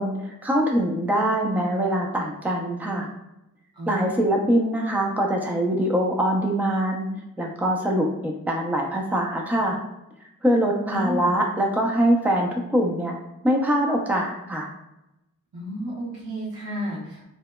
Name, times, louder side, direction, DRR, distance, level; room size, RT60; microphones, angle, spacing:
voice 1, 0.0-3.1 3.9-7.1 7.4-9.8 10.4-13.1 13.4-14.7, right 1 dB, 5° right, 0 dB, 0.5 m, -23 dB
voice 2, 3.7-4.2 10.9-11.3 15.5-17.3, equal, 85° right, -5 dB, 1.0 m, -32 dB
2.9 x 2.0 x 2.2 m, 0.90 s
cardioid pair, 40°, 35 cm